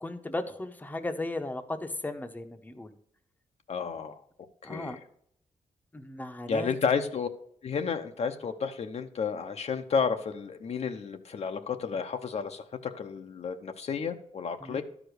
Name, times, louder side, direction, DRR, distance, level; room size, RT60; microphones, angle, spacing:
voice 1, 0.0-2.9 4.6-5.0 5.9-6.7 14.6-14.8, left 2 dB, 15° left, 7 dB, 0.8 m, -36 dB
voice 2, 3.7-4.2 4.6-5.0 6.5-7.3 7.6-14.8, left 6 dB, 55° left, 7 dB, 0.8 m, -31 dB
12.0 x 5.0 x 6.3 m, 0.67 s
wide cardioid pair, 110°, 13 cm